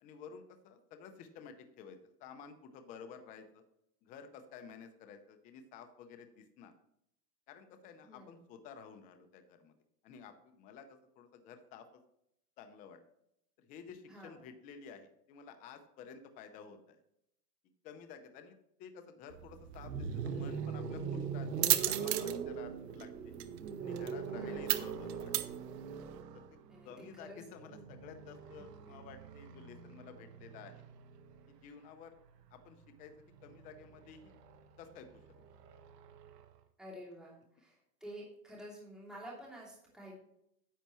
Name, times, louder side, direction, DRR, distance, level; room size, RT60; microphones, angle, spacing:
voice 1, 0.0-3.6 4.0-6.7 7.5-9.7 10.0-11.9 12.6-13.0 13.6-17.0 17.8-23.3 23.8-25.3 26.8-30.9 31.5-32.1 32.5-33.1 33.4-34.4 34.8-35.4, left 6 dB, 15° left, 7 dB, 0.6 m, -52 dB
voice 2, 8.0-8.4 14.1-14.4 24.3-24.6 26.7-27.4 28.6-28.7 36.8-40.2, equal, ahead, -6 dB, 2.8 m, -50 dB
sound 1, 19.3-26.2, right 15 dB, 45° right, 0.8 m, -37 dB
sound 2, 19.7-31.6 32.9-36.5, right 6 dB, 80° right, 1.4 m, -42 dB
10.0 x 8.0 x 3.1 m, 0.75 s
supercardioid pair, 150°, 48 cm